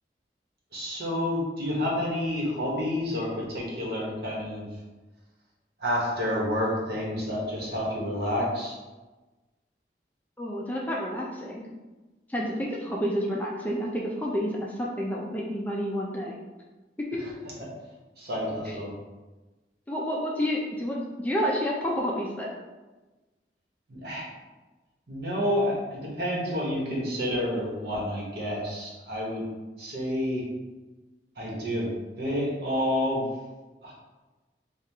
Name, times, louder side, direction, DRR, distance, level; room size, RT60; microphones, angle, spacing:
voice 1, 0.7-4.7 5.8-8.8 18.2-18.9 23.9-24.3 25.1-29.4 29.8-30.4 31.4-31.9 32.2-33.2 33.8-33.9, left 1 dB, 65° right, -4 dB, 1.2 m, -29 dB
voice 2, 10.4-11.6 12.3-16.3 17.1-17.2 18.7-18.8 19.9-22.5, equal, 10° left, -4 dB, 0.4 m, -29 dB
4.5 x 2.4 x 3.4 m, 1.2 s
head